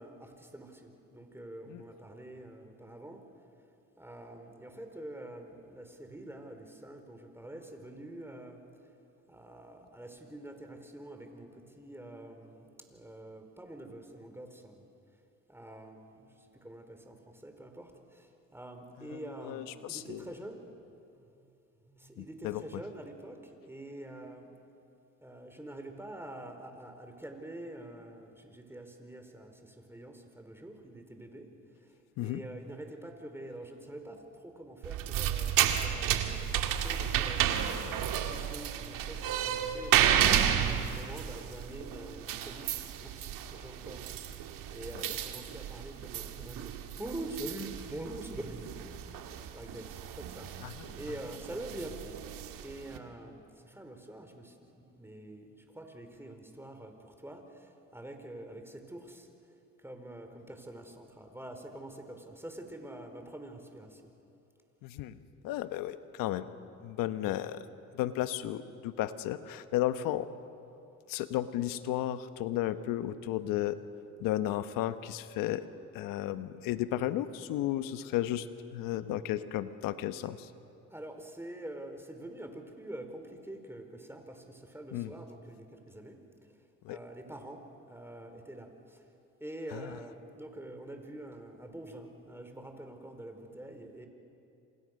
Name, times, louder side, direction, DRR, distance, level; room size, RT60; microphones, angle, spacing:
voice 1, 0.0-3.3 4.0-8.6 9.3-14.9 15.5-20.7 21.1-21.5 21.8-24.8 25.2-44.2 44.7-49.2 49.5-52.2 52.6-59.3 59.8-64.1 80.9-86.6 86.9-89.1 89.4-94.1, right 1 dB, 5° right, 5 dB, 4.4 m, -46 dB
voice 2, 19.1-20.2 22.2-22.8 32.2-32.4 50.6-51.0 64.8-65.2 65.4-66.5 66.8-67.6 67.9-70.3 71.1-73.8 74.2-75.7 75.9-80.5 84.9-85.1 86.8-87.0 89.7-89.9, left 13 dB, 85° left, 11 dB, 1.2 m, -34 dB
sound 1, 34.8-53.0, right 10 dB, 75° right, 2.0 m, -32 dB
28.0 x 27.0 x 6.6 m, 2.7 s
supercardioid pair, 70°, 33 cm